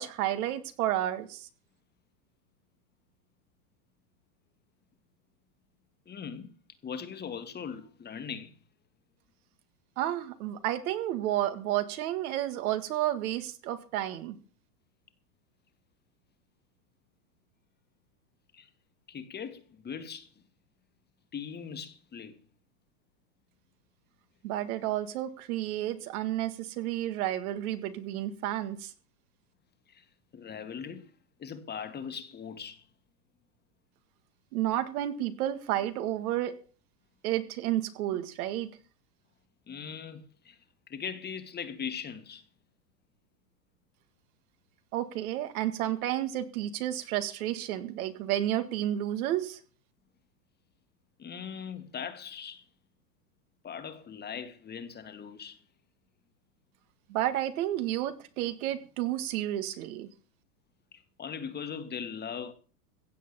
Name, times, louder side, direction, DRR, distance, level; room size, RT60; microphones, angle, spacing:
voice 1, 0.0-1.5 10.0-14.4 24.4-28.9 34.5-36.5 37.2-38.7 44.9-49.6 57.1-60.1, right 13 dB, 65° right, 1.9 m, -31 dB
voice 2, 6.1-6.6 6.8-8.6 18.5-18.7 19.1-20.3 21.3-22.4 24.8-24.9 29.9-30.0 30.3-31.1 31.4-32.9 38.1-38.2 39.7-40.6 40.9-42.4 51.2-52.6 53.6-55.6 60.9-62.5, left 7 dB, 20° left, 1.8 m, -40 dB
16.0 x 7.9 x 6.8 m
hypercardioid pair, 120°, 47 cm